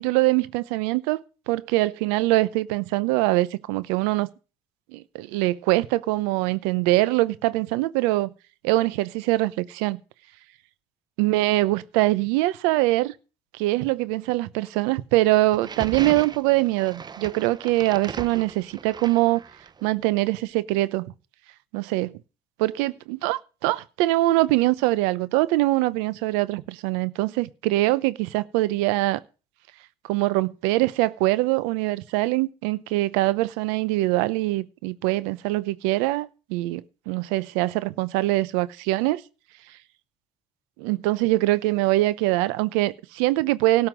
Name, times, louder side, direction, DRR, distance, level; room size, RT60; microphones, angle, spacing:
voice 1, 0.0-4.3 4.9-8.3 8.6-10.0 11.2-13.1 13.6-19.4 19.8-21.1 21.7-22.1 22.6-29.2 30.1-39.2 40.8-43.9, right 18 dB, 85° right, 0.8 m, -23 dB
sound 1, 15.5-19.9, right 6 dB, 30° right, 0.8 m, -37 dB
13.0 x 5.7 x 9.1 m
supercardioid pair, 80°, 15 cm